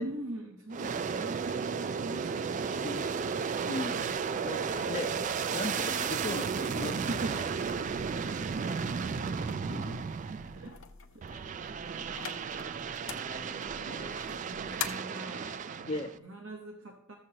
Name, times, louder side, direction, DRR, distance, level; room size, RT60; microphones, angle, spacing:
voice 1, 0.0-4.1 7.1-10.8 11.1-11.6 11.9-12.3 13.3-17.1, right 1 dB, 65° right, 2 dB, 0.9 m, -44 dB
Aircraft, 0.7-10.7 11.2-16.2, right 6 dB, 35° right, 0.3 m, -34 dB
voice 2, 3.7-5.2 5.5-7.4 9.7-10.0 11.3-11.4 12.2-12.5 13.1-14.2 15.9-16.1, left 2 dB, 30° left, 1 dB, 0.5 m, -39 dB
sound 1, 7.6-14.9, left 7 dB, 65° left, 0.8 m, -45 dB
14.5 x 7.5 x 2.9 m, 0.77 s
head